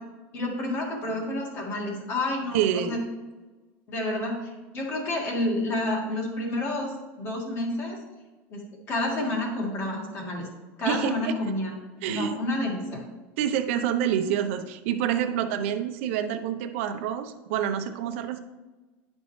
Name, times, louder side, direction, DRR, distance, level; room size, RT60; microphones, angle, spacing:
voice 1, 0.3-3.0 3.9-4.4 4.7-8.0 8.5-8.6 8.9-10.5 10.8-11.7 12.1-13.0, left 1 dB, 35° left, 0 dB, 1.8 m, -29 dB
voice 2, 2.5-3.0 10.9-11.5 12.0-12.4 13.4-18.4, right 9 dB, 75° right, 6 dB, 0.8 m, -27 dB
10.5 x 5.3 x 3.2 m, 1.2 s
supercardioid pair, 160°, 7 cm